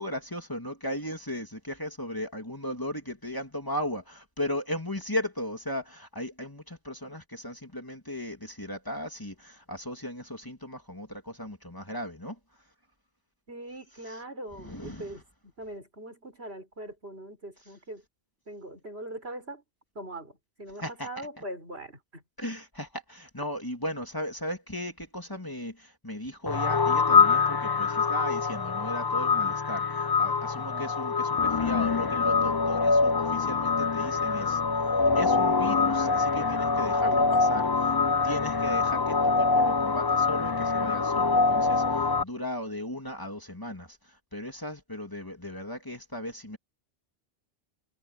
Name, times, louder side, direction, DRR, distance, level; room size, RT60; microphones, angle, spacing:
voice 1, 0.0-12.4 14.1-14.2 14.5-15.2 20.8-21.3 22.4-34.6 35.1-38.0 38.2-46.6, equal, 20° left, 2.8 m, -36 dB
voice 2, 13.5-15.2 15.6-18.0 18.5-19.6 19.9-22.2 30.5-30.9 36.9-37.3, right 1 dB, 70° right, 6.5 m, -41 dB
sound 1, 26.5-42.2, left 4 dB, 35° left, 0.4 m, -24 dB
omnidirectional pair, 1.1 m